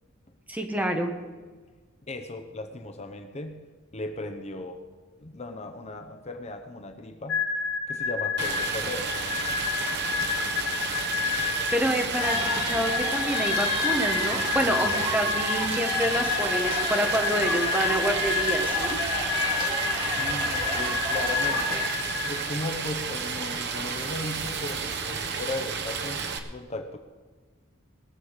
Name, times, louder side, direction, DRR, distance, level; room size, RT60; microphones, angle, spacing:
voice 1, 0.5-1.1 11.7-19.0, equal, 10° right, 4 dB, 1.3 m, -28 dB
voice 2, 2.1-3.7 3.9-4.8 5.2-7.5 7.9-9.1 20.0-21.9 22.3-27.0, left 2 dB, 35° left, 6 dB, 0.9 m, -36 dB
tone rail, 7.3-22.9, left 6 dB, 60° left, 1.9 m, -30 dB
Stream, 8.4-26.4, right 5 dB, 60° right, 1.1 m, -32 dB
sound 1, 12.2-21.9, right 1 dB, 25° right, 2.3 m, -32 dB
20.0 x 7.0 x 6.6 m, 1.4 s
head